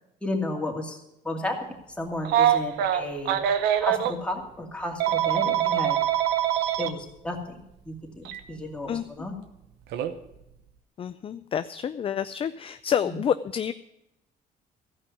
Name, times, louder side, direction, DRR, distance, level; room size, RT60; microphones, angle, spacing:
voice 1, 0.2-1.0 1.2-1.5 2.0-3.4 3.8-6.0 6.8-7.4 7.8-9.3 13.1-13.2, left 1 dB, 5° left, 0 dB, 2.5 m, -32 dB
Telephone, 2.2-4.1 5.0-6.9 8.2-8.4 9.9-10.1, right 11 dB, 80° right, 0.9 m, -23 dB
voice 2, 11.0-13.7, left 8 dB, 35° left, 12 dB, 0.4 m, -28 dB
14.5 x 5.5 x 9.6 m, 0.85 s
cardioid pair, 110°, 17 cm